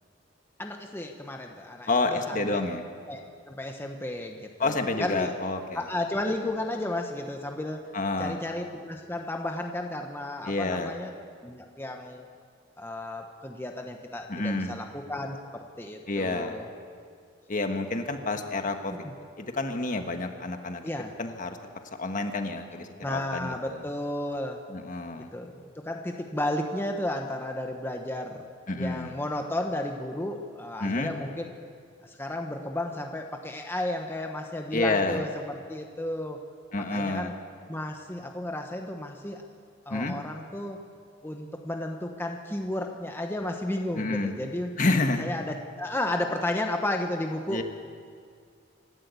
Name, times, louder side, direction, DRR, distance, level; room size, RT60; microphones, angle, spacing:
voice 1, 0.6-2.6 3.1-3.2 3.5-5.3 5.7-7.9 8.2-11.1 11.4-12.3 12.8-16.7 20.8-21.1 23.0-24.6 25.3-28.5 28.8-31.5 32.0-36.4 36.9-37.3 37.7-39.4 39.9-40.8 41.2-44.7 45.2-47.6, left 1 dB, 10° left, 2 dB, 1.1 m, -33 dB
voice 2, 1.9-2.8 4.6-5.8 7.9-8.4 10.5-11.0 14.3-14.7 16.1-16.6 17.5-18.9 19.4-20.8 21.2-21.6 22.0-23.8 24.7-25.3 28.7-29.2 30.8-31.1 34.7-35.2 36.7-37.3 39.9-40.1 44.0-44.3 44.8-45.3 47.5-47.6, left 2 dB, 45° left, 5 dB, 1.5 m, -29 dB
26.5 x 12.5 x 8.3 m, 2.1 s
head